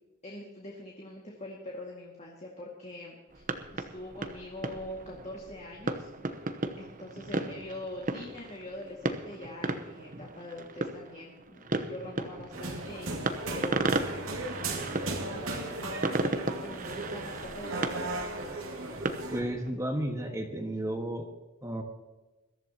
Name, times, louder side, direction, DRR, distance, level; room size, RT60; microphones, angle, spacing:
voice 1, 0.2-3.4 3.7-6.1 6.8-16.3 16.6-18.2, left 1 dB, 30° left, -2 dB, 2.1 m, -44 dB
sound 1, 3.3-19.7, right 2 dB, 40° right, 1.0 m, -36 dB
sound 2, 12.5-19.4, right 2 dB, 80° right, 2.4 m, -36 dB
voice 2, 19.3-21.3 21.6-21.8, right 1 dB, 15° right, 3 dB, 1.6 m, -32 dB
22.0 x 14.0 x 2.9 m, 1.1 s
head